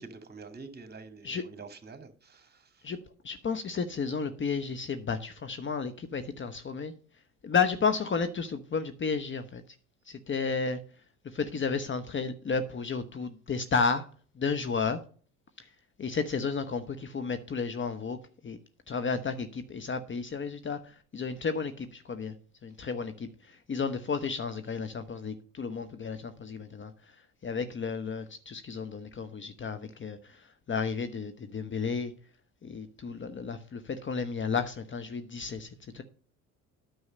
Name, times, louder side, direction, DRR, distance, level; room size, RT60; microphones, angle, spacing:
voice 1, 0.0-2.9, right 4 dB, 25° right, 2.3 m, -47 dB
voice 2, 3.2-6.9 7.4-9.6 10.1-10.8 11.3-14.0 14.4-15.0 16.0-18.2 18.4-18.6 18.9-20.8 21.1-22.3 22.6-23.3 23.7-26.9 27.4-30.2 30.7-32.1 32.6-35.7 35.9-36.0, left 5 dB, 30° left, 1.0 m, -32 dB
9.6 x 6.4 x 5.4 m
hypercardioid pair, 60°, 39 cm